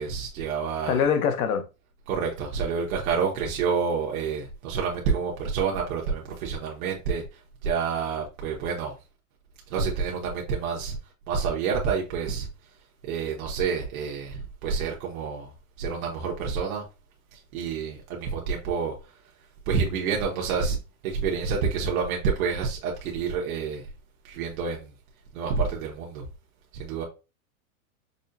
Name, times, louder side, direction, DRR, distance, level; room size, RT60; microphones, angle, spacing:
voice 1, 0.0-1.0 2.1-7.2 7.6-8.9 9.7-11.0 11.3-12.5 13.0-15.5 15.8-16.8 17.3-18.9 19.7-20.8 21.0-23.8 24.2-24.9 25.3-26.3 26.7-27.0, right 5 dB, 75° right, 1.0 m, -28 dB
voice 2, 0.9-1.7, left 7 dB, 85° left, 0.9 m, -23 dB
5.3 x 2.2 x 2.6 m
supercardioid pair, 140°, 43 cm